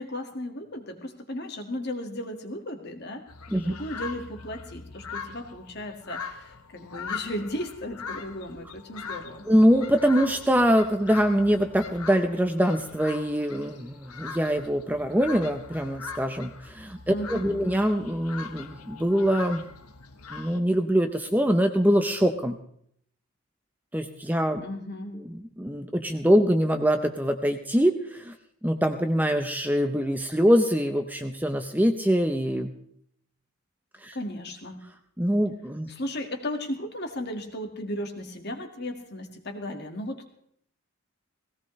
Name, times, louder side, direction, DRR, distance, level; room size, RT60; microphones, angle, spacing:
voice 1, 0.0-9.4 17.1-17.7 24.6-25.2 34.1-34.8 35.9-40.3, left 1 dB, 50° left, 5 dB, 1.9 m, -35 dB
sound 1, 3.3-20.6, left 5 dB, 90° left, 1.1 m, -41 dB
voice 2, 9.5-19.6 20.3-22.6 23.9-24.6 25.2-28.3 28.6-32.7 34.0-34.2 35.2-35.9, equal, 10° right, 6 dB, 0.7 m, -24 dB
18.0 x 17.0 x 3.2 m, 0.66 s
head